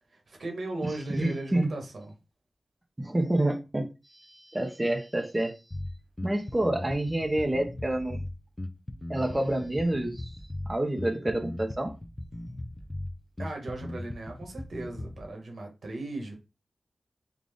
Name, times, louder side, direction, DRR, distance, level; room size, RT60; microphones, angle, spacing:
voice 1, 0.3-2.1 13.4-16.3, right 2 dB, 75° right, 1.4 m, -37 dB
voice 2, 0.8-1.7 3.0-3.9 4.1-5.6 6.2-8.2 9.1-10.3 10.7-11.9, right 1 dB, 20° right, 0.7 m, -28 dB
Bass guitar, 5.7-15.3, left 1 dB, 25° left, 0.4 m, -38 dB
3.8 x 2.4 x 3.5 m
wide cardioid pair, 70°, 0 cm